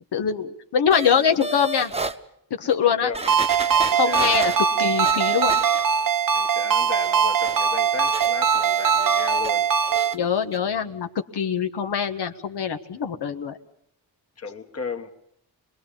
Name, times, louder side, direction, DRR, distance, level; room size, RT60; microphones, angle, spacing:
voice 1, 0.1-1.9 2.5-3.1 3.9-4.5 4.8-5.6 10.1-11.1 11.3-13.6, left 7 dB, 75° left, 1.5 m, -23 dB
sound 1, 0.9-2.2 2.7-2.8 3.1-6.1 6.4-9.5 9.8-10.2 10.5-10.6, right 2 dB, 15° right, 1.0 m, -34 dB
voice 2, 2.8-4.6 6.3-9.7 14.4-15.1, left 5 dB, 35° left, 1.8 m, -35 dB
Ringtone, 3.3-10.1, right 7 dB, 55° right, 0.9 m, -21 dB
27.0 x 21.0 x 7.1 m
wide cardioid pair, 125°, 41 cm